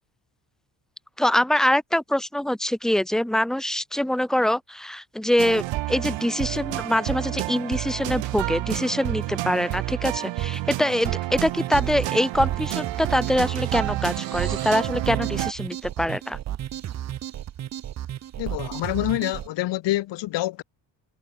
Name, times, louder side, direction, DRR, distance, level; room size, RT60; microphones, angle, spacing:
voice 1, 1.2-16.4, left 1 dB, ahead, 1.9 m, -24 dB
sound 1, 5.4-15.5, right 17 dB, 85° right, 3.1 m, -29 dB
sound 2, 11.3-19.5, right 11 dB, 40° right, 0.6 m, -34 dB
sound 3, 12.2-14.9, right 10 dB, 55° right, 6.8 m, -43 dB
voice 2, 18.4-20.6, left 16 dB, 70° left, 1.5 m, -26 dB
cardioid pair, 120°, 43 cm